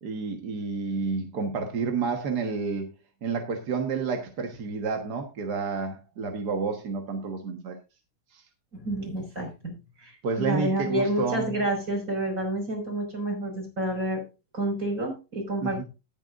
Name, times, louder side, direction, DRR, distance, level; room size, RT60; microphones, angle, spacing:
voice 1, 0.0-2.9 3.2-7.8 8.3-8.4 10.2-11.5 15.6-15.8, right 4 dB, 60° right, 4 dB, 1.0 m, -30 dB
voice 2, 8.7-14.2 14.5-15.8, right 1 dB, 20° right, 0 dB, 5.5 m, -29 dB
19.0 x 7.2 x 2.5 m, 0.28 s
omnidirectional pair, 3.9 m